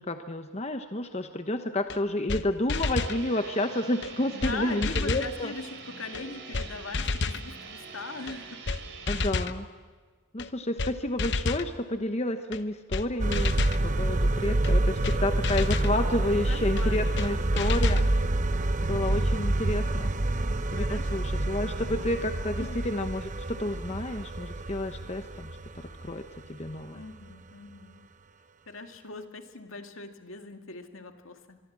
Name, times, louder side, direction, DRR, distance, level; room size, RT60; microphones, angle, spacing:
voice 1, 0.0-5.5 9.1-9.7 10.3-13.5 13.8-18.0 18.8-20.1 20.7-25.5 26.0-26.2 26.5-27.0, left 1 dB, 30° left, 7 dB, 1.0 m, -30 dB
sound 1, 1.9-2.0 2.3-2.4 2.7-3.2 4.0-4.1 4.4-4.6 4.8-5.3 6.1-6.2 6.5-6.7 6.9-7.4 8.3-8.4 8.7-8.8 9.1-9.6 10.4-10.5 10.8-10.9 11.2-11.7 12.5-12.6 12.9-13.0 13.3-13.8 14.6-14.7 15.0-15.2 15.4-15.9 16.8-16.9 17.2-17.3 17.6-18.1, left 3 dB, 55° left, 0.9 m, -29 dB
sound 2, 2.8-9.3, right 5 dB, 55° right, 4.0 m, -44 dB
voice 2, 4.3-9.0 16.3-18.0 20.8-22.1 22.6-22.8 26.9-28.0 28.7-31.6, left 3 dB, 75° left, 6 dB, 2.2 m, -41 dB
sound 3, 13.2-27.0 27.3-27.4, right 2 dB, 35° right, 0.8 m, -28 dB
24.0 x 24.0 x 7.5 m, 1.5 s
head